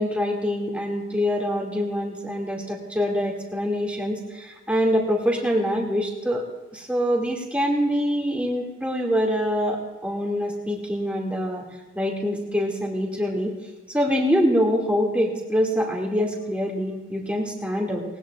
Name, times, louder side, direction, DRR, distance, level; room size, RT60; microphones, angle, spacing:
voice 1, 0.0-6.4 6.7-11.7 11.9-13.5 13.9-18.0, equal, 5° right, -2 dB, 2.3 m, -25 dB
19.5 x 19.0 x 2.5 m, 1.1 s
head